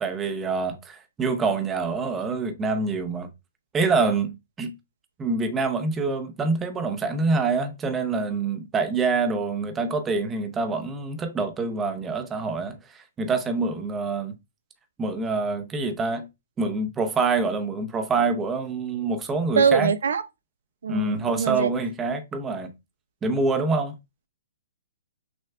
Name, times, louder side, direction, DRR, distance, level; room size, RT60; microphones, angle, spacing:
voice 1, 0.0-3.3 3.7-4.8 5.2-14.4 15.0-16.3 16.6-19.9 20.9-22.7 23.2-24.0, right 4 dB, 15° right, 0.6 m, -26 dB
voice 2, 19.6-20.2 20.8-21.7, right 6 dB, 80° right, 0.4 m, -22 dB
6.1 x 2.3 x 2.2 m
hypercardioid pair, 155°, 0 cm